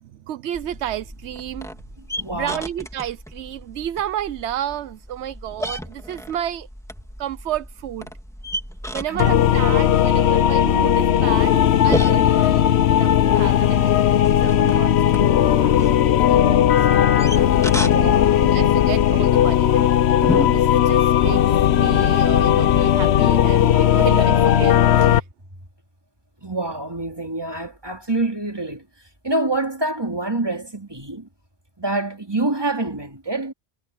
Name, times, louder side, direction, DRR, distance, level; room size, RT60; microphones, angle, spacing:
voice 1, 0.0-1.7 2.3-6.7 7.2-8.1 8.9-11.5 11.8-12.6 12.9-13.9 14.3-18.1 18.4-19.9 20.5-21.4 21.8-25.3, right 11 dB, 85° right, 0.9 m, -31 dB
sound 1, 0.5-20.5, equal, 5° left, 2.2 m, -34 dB
voice 2, 2.1-2.7 9.1-9.3 17.8-18.6 26.4-28.9 29.2-31.3 31.8-33.5, right 2 dB, 20° right, 3.0 m, -26 dB
sound 2, 9.2-25.2, left 10 dB, 75° left, 1.0 m, -17 dB
omnidirectional pair, 1.1 m